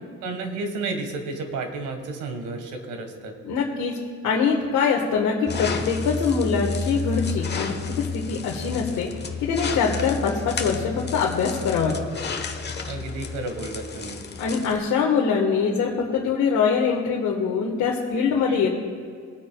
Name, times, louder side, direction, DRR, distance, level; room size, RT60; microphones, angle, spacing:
voice 1, 0.2-3.3 12.9-14.2 18.5-18.7, right 3 dB, 85° right, 5 dB, 1.6 m, -32 dB
voice 2, 3.4-3.9 4.2-9.1 9.4-12.0 14.4-18.7, left 5 dB, 85° left, -3 dB, 1.5 m, -23 dB
sound 1, 5.5-14.8, left 4 dB, 35° left, 1.1 m, -31 dB
21.5 x 8.8 x 2.3 m, 2.1 s
cardioid pair, 90°, 30 cm